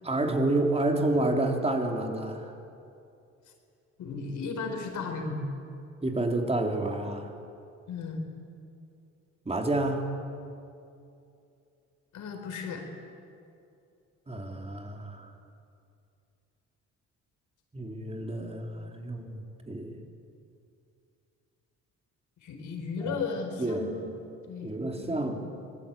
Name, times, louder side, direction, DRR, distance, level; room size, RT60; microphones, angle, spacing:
voice 1, 0.0-2.5 6.0-7.3 9.5-10.1 14.3-15.3 17.7-20.0 23.0-23.2 23.6-23.9 24.6-25.3, right 2 dB, 20° right, 2 dB, 3.7 m, -29 dB
voice 2, 4.0-5.5 7.9-8.2 12.1-12.8 22.4-25.4, left 4 dB, 75° left, 4 dB, 4.7 m, -35 dB
25.0 x 20.5 x 9.0 m, 2.6 s
cardioid pair, 90°, 30 cm